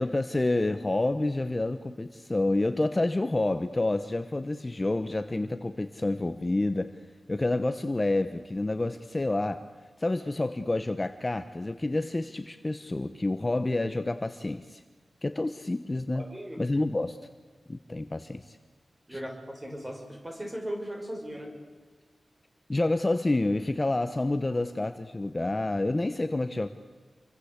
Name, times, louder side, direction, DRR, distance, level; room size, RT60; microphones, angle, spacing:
voice 1, 0.0-6.9 7.3-9.6 10.0-14.8 15.2-16.3 16.6-17.2 17.7-18.6 19.1-19.2 22.7-26.7, left 2 dB, 20° left, 9 dB, 1.0 m, -28 dB
voice 2, 16.1-16.6 19.1-21.5, equal, 15° right, 3 dB, 5.7 m, -38 dB
28.0 x 24.0 x 8.2 m, 1.4 s
wide cardioid pair, 145°, 0 cm